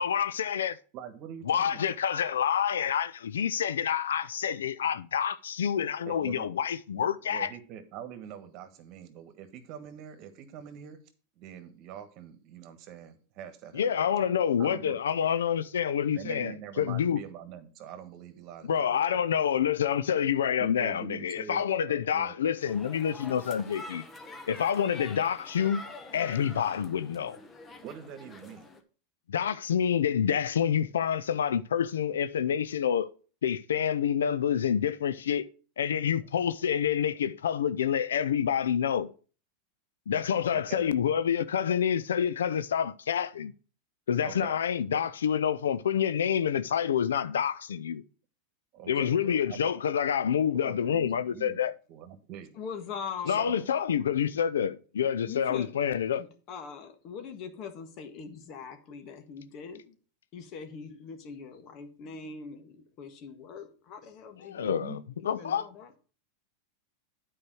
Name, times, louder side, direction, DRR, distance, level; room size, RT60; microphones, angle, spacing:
voice 1, 0.0-0.8 1.5-7.5 13.7-17.2 18.6-24.0 24.5-25.8 26.1-27.4 29.3-33.1 33.4-35.5 35.8-39.1 40.1-43.5 44.1-48.0 48.9-51.7 53.3-56.2 64.4-65.7, left 8 dB, 90° left, 0.4 m, -28 dB
voice 2, 0.9-1.9 6.1-6.5 6.9-11.0 11.3-13.9 14.6-15.0 16.1-19.2 20.6-22.4 27.8-28.7 40.5-40.9 44.2-44.6 44.9-45.1 48.7-49.6 50.5-51.6 51.9-52.6 53.3-54.3 64.6-65.0, right 9 dB, 50° right, 1.4 m, -44 dB
sound 1, 22.6-28.8, left 2 dB, 25° left, 1.2 m, -46 dB
voice 3, 52.5-53.4 55.2-55.8 56.1-59.9 60.3-64.8 65.2-65.9, left 6 dB, 45° left, 1.5 m, -42 dB
8.8 x 4.7 x 6.1 m
hypercardioid pair, 110°, 0 cm